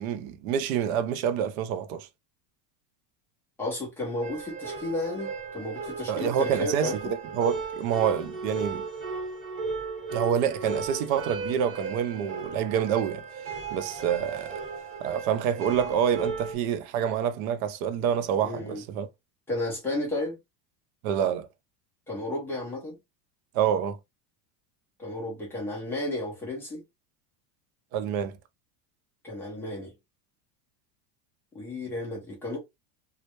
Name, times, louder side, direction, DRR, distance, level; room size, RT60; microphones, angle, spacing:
voice 1, 0.0-2.1 6.1-8.9 10.1-13.2 13.7-14.6 15.0-19.1 21.0-21.5 23.5-24.0 27.9-28.4, right 8 dB, 60° right, 0.5 m, -27 dB
voice 2, 3.6-7.0 18.4-18.8 19.5-20.4 22.1-23.0 25.0-26.8 29.2-29.9 31.5-32.6, left 1 dB, 5° left, 0.3 m, -33 dB
sound 1, 4.2-16.5, right 4 dB, 30° right, 0.9 m, -35 dB
2.1 x 2.0 x 2.9 m
supercardioid pair, 160°, 47 cm